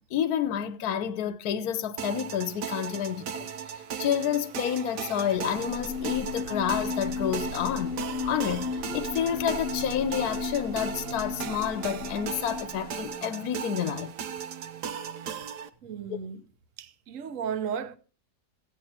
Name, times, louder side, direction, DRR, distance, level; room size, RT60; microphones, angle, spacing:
voice 1, 0.1-3.5 4.0-7.9 8.2-14.1 16.1-16.2, left 9 dB, 65° left, 1.2 m, -29 dB
sound 1, 2.0-15.7, right 7 dB, 70° right, 1.5 m, -37 dB
sound 2, 5.4-13.2, left 5 dB, 45° left, 0.8 m, -35 dB
voice 2, 15.8-16.4 16.8-18.0, right 7 dB, 55° right, 1.2 m, -34 dB
15.5 x 9.8 x 4.3 m
omnidirectional pair, 1.9 m